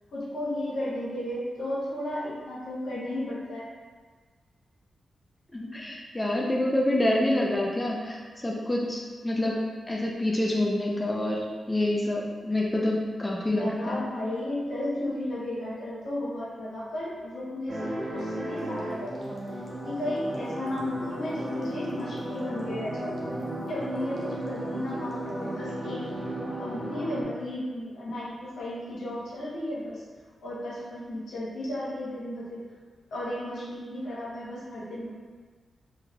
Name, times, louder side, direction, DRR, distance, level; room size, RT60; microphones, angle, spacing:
voice 1, 0.1-3.7 13.5-19.4 19.8-23.2 23.7-26.0 26.6-30.0 30.4-32.6 33.1-35.1, left 1 dB, 80° left, -6 dB, 0.9 m, -34 dB
voice 2, 5.5-9.6 9.9-14.0, left 1 dB, 20° left, -2 dB, 0.5 m, -27 dB
sound 1, 17.7-27.2, right 1 dB, 60° right, 0.8 m, -35 dB
3.4 x 3.0 x 2.3 m, 1.5 s
cardioid pair, 55°, 0 cm